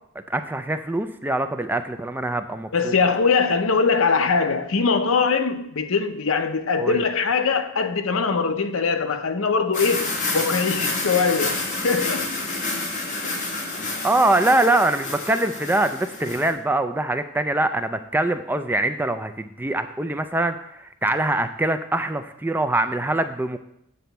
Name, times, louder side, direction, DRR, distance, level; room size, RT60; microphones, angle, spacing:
voice 1, 0.3-2.9 6.8-7.0 14.0-23.6, right 2 dB, 10° right, 0.3 m, -23 dB
voice 2, 2.7-11.6 11.8-12.3 13.2-13.3, left 5 dB, 70° left, 0.7 m, -22 dB
sound 1, 9.7-16.5, left 3 dB, 35° left, 1.6 m, -29 dB
7.7 x 4.1 x 6.8 m
head